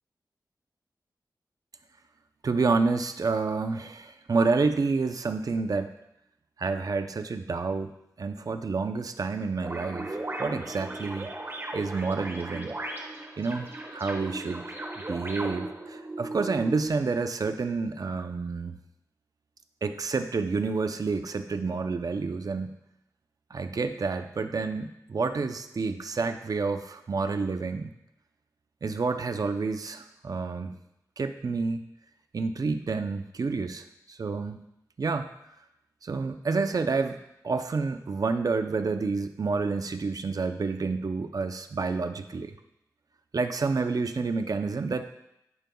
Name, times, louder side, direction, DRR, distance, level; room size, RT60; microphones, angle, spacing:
voice 1, 2.4-5.9 6.6-7.9 8.2-11.3 11.7-12.7 13.4-14.6 15.1-18.8 19.8-22.8 23.5-27.9 28.8-30.8 31.2-31.8 32.3-34.6 35.0-35.3 36.0-37.2 37.4-42.5 43.3-45.1, right 4 dB, 60° right, 8 dB, 0.6 m, -29 dB
sound 1, 9.6-16.9, right 2 dB, 35° right, 1.3 m, -37 dB
14.0 x 5.2 x 2.3 m, 0.83 s
wide cardioid pair, 65°, 7 cm